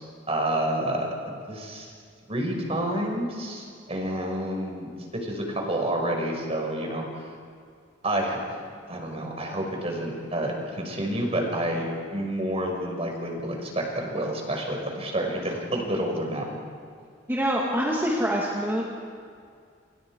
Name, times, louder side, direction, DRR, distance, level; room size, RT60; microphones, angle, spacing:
voice 1, 0.3-1.9 2.3-7.1 8.0-8.4 8.9-16.5, right 1 dB, 35° right, 1 dB, 5.7 m, -29 dB
voice 2, 17.3-18.8, equal, 10° right, -4 dB, 2.6 m, -25 dB
29.5 x 27.5 x 5.0 m, 2.2 s
head